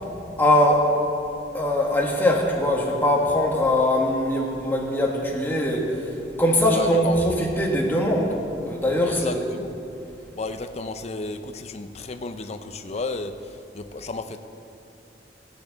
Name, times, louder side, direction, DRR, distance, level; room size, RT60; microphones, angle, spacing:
voice 1, 0.4-0.9 1.5-6.0 6.4-8.3 8.6-9.6, left 1 dB, 10° left, -2 dB, 1.6 m, -21 dB
voice 2, 6.7-7.1 9.0-9.7 10.3-14.4, left 3 dB, 40° left, 8 dB, 0.6 m, -33 dB
15.5 x 10.0 x 4.1 m, 2.7 s
head